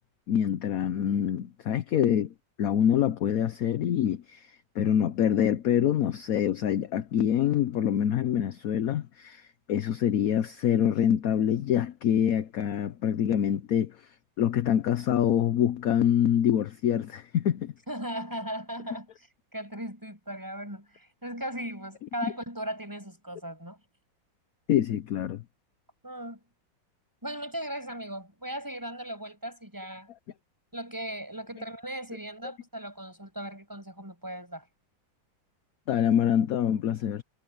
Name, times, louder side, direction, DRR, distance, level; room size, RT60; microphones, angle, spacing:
voice 1, 0.3-2.3 2.6-4.5 4.8-14.0 14.4-17.7 24.7-25.4 35.9-37.2, left 9 dB, 60° left, 1.0 m, -25 dB
voice 2, 17.9-19.3 19.5-23.8 26.0-26.4 27.2-30.1 30.7-34.7, right 1 dB, 10° right, 6.4 m, -37 dB
omnidirectional pair, 2.0 m